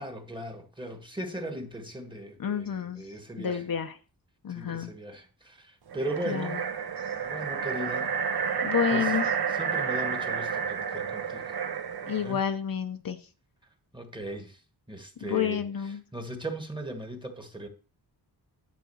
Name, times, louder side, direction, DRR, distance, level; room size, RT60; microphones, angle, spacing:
voice 1, 0.0-3.6 4.5-6.6 7.2-8.1 8.9-9.1 9.5-11.6 12.2-12.4 13.9-14.6 14.9-15.6 16.1-17.7, right 1 dB, 10° right, 1.4 m, -38 dB
voice 2, 2.4-3.0 3.4-4.0 4.4-4.9 6.3-6.6 8.6-9.3 12.1-13.2 15.2-16.0, left 8 dB, 60° left, 0.8 m, -29 dB
sound 1, 5.9-12.3, right 6 dB, 70° right, 1.1 m, -30 dB
10.5 x 3.7 x 6.9 m
wide cardioid pair, 115°, 39 cm